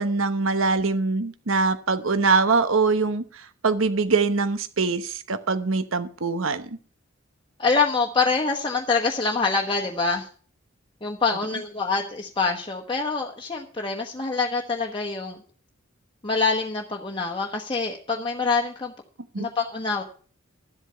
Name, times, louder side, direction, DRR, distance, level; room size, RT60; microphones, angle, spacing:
voice 1, 0.0-6.6 19.3-19.5, right 4 dB, 75° right, 11 dB, 1.0 m, -23 dB
voice 2, 7.6-10.3 11.0-15.4 16.2-18.9 19.4-20.0, left 4 dB, 25° left, 1 dB, 1.2 m, -25 dB
12.5 x 8.1 x 5.6 m, 0.42 s
head